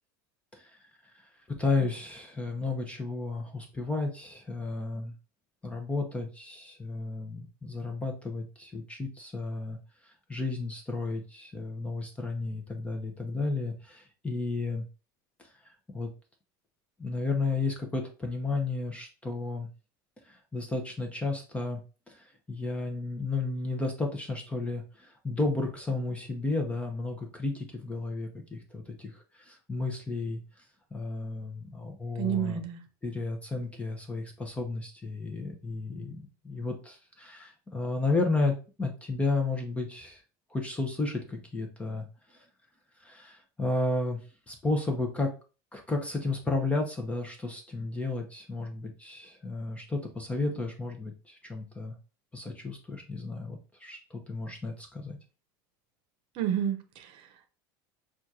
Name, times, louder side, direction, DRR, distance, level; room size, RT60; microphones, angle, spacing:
voice 1, 1.1-5.1 5.6-9.8 10.0-14.8 15.4-15.5 15.9-16.1 17.0-19.7 20.2-21.8 22.1-30.4 30.9-32.6 33.0-40.2 40.5-42.4 43.0-44.2 44.5-45.3 45.7-52.0 52.3-55.2, left 3 dB, 10° left, 0.8 m, -33 dB
voice 2, 32.2-32.8 56.3-57.5, right 9 dB, 55° right, 0.8 m, -31 dB
6.0 x 2.5 x 2.8 m
supercardioid pair, 115°, 11 cm